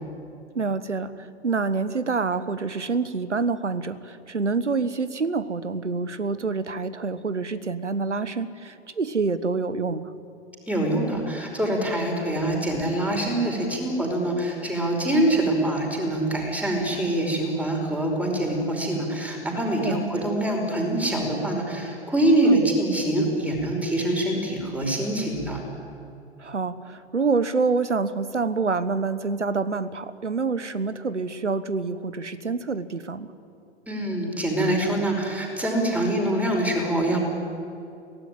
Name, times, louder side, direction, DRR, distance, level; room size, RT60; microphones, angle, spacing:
voice 1, 0.5-10.1 19.8-20.0 22.4-22.7 26.4-33.3, right 4 dB, 85° right, 15 dB, 1.3 m, -27 dB
voice 2, 10.7-25.6 33.9-37.2, right 1 dB, 5° right, 1 dB, 5.2 m, -24 dB
24.0 x 18.0 x 9.3 m, 2.6 s
figure-of-eight pair, 105°, 35 cm